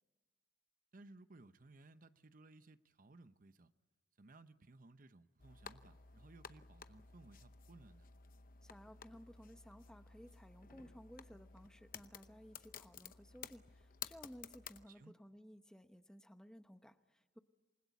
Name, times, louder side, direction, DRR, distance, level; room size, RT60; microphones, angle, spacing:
voice 1, 0.9-3.7 4.2-8.1 14.9-15.1, right 2 dB, 50° right, 0.8 m, -60 dB
sound 1, 5.4-14.9, left 7 dB, 50° left, 0.8 m, -54 dB
voice 2, 8.6-17.4, equal, 5° left, 0.9 m, -57 dB
27.5 x 20.5 x 8.3 m
head